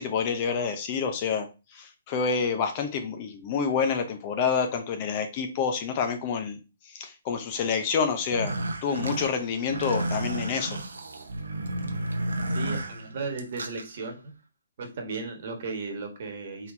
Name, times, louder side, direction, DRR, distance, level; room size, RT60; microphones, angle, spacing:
voice 1, 0.0-1.5 1.7-6.6 6.9-8.5 8.8-10.8, left 6 dB, 35° left, 6 dB, 0.8 m, -28 dB
sound 1, 8.2-13.8, right 1 dB, 80° right, 0.8 m, -32 dB
voice 2, 12.5-14.3 14.8-16.7, right 4 dB, 50° right, 3 dB, 1.4 m, -35 dB
4.3 x 4.0 x 2.7 m, 0.30 s
figure-of-eight pair, 135°, 0 cm